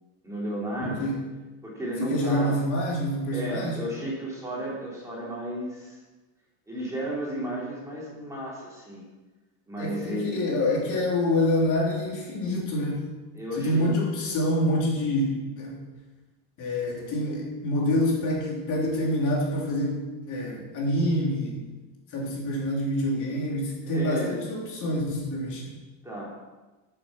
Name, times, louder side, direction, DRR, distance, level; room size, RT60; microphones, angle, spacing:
voice 1, 0.2-1.1 1.6-2.6 3.3-6.0 6.7-9.0 9.7-10.4 13.3-13.9 23.1-23.3 23.8-24.4 26.0-26.3, right 1 dB, 5° right, -5 dB, 3.1 m, -33 dB
voice 2, 0.8-1.2 2.0-3.8 9.8-13.0 13.6-15.8 16.6-20.0 20.3-21.6 22.1-25.7, left 1 dB, 45° left, -3 dB, 3.4 m, -26 dB
13.5 x 7.1 x 5.8 m, 1.2 s
cardioid pair, 170°, 41 cm